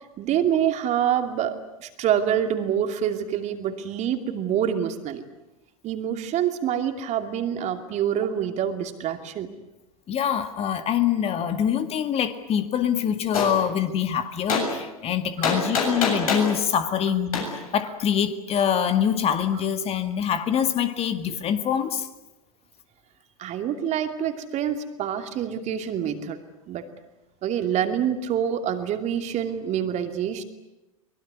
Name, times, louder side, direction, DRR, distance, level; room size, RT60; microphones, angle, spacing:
voice 1, 0.2-5.2 5.8-9.5 15.4-15.5 23.4-26.4 26.7-26.9 27.4-30.4, right 9 dB, 40° right, 7 dB, 2.7 m, -26 dB
voice 2, 10.1-22.1, left 8 dB, 30° left, 9 dB, 2.0 m, -25 dB
Gunshot gunfire, 13.3-13.5 14.5-14.7 15.4-16.5 17.3-17.5, left 5 dB, 70° left, 7.4 m, -23 dB
24.0 x 21.0 x 9.6 m, 0.99 s
figure-of-eight pair, 90°, 19 cm